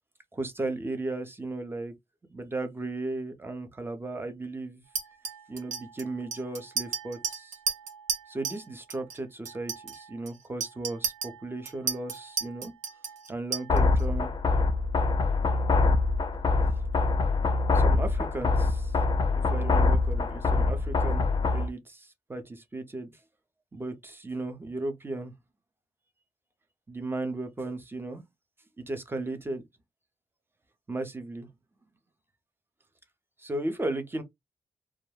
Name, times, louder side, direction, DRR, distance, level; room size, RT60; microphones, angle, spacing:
voice 1, 0.3-1.9 2.3-4.8 5.5-7.6 8.3-12.7 13.3-14.3 17.7-19.0 19.5-21.3 21.5-23.1 23.7-25.3 26.9-28.2 28.8-29.6 30.9-31.5 33.4-34.2, right 2 dB, 20° right, 0.6 m, -35 dB
Chink clink, 4.9-8.6 8.9-9.2 9.4-14.0, right 6 dB, 85° right, 0.6 m, -34 dB
sound 1, 13.7-21.7, left 3 dB, 40° left, 0.4 m, -24 dB
2.3 x 2.1 x 3.1 m
cardioid pair, 100°, 12 cm